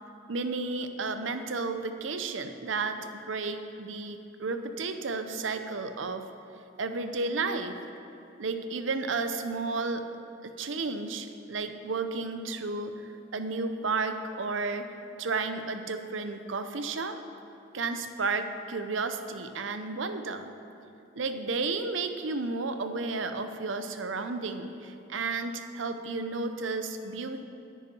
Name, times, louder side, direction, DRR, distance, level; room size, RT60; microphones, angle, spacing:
voice 1, 0.3-6.3 6.8-7.8 8.4-10.0 10.4-14.9 15.2-17.2 17.7-20.5 21.2-27.5, right 3 dB, 80° right, 8 dB, 0.7 m, -32 dB
9.8 x 9.6 x 5.4 m, 2.7 s
head